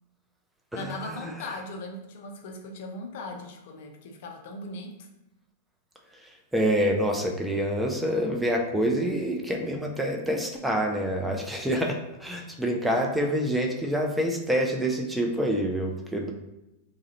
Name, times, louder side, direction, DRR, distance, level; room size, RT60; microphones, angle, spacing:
voice 1, 0.7-5.1, left 2 dB, 55° left, 3 dB, 0.4 m, -39 dB
voice 2, 6.5-16.3, equal, 5° right, 1 dB, 0.4 m, -27 dB
2.3 x 2.0 x 2.8 m, 0.94 s
figure-of-eight pair, 95°, 0 cm